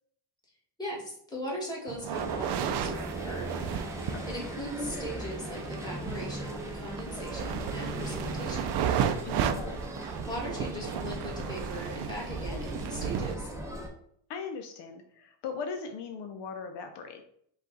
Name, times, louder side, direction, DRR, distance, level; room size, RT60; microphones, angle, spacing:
voice 1, 0.8-3.5 4.3-8.8 9.6-9.7 10.3-13.5, equal, 10° left, -4 dB, 1.6 m, -39 dB
sound 1, 1.9-13.3, right 8 dB, 60° right, 0.5 m, -34 dB
sound 2, 2.1-13.9, right 1 dB, 5° right, 0.6 m, -38 dB
voice 2, 4.1-4.5 9.2-9.6 14.3-17.3, left 5 dB, 65° left, 5 dB, 0.6 m, -39 dB
5.4 x 2.4 x 3.8 m, 0.68 s
cardioid pair, 140°, 44 cm